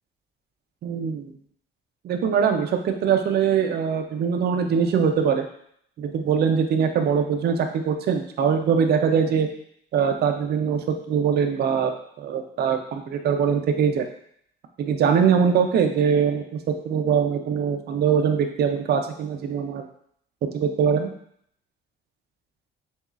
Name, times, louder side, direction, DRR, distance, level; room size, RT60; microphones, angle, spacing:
voice 1, 0.8-1.3 2.0-5.5 6.0-9.5 9.9-11.9 12.2-14.1 14.8-19.8 20.5-21.1, right 7 dB, 55° right, 5 dB, 0.5 m, -22 dB
6.9 x 2.3 x 2.4 m, 0.68 s
cardioid pair, 155°, 20 cm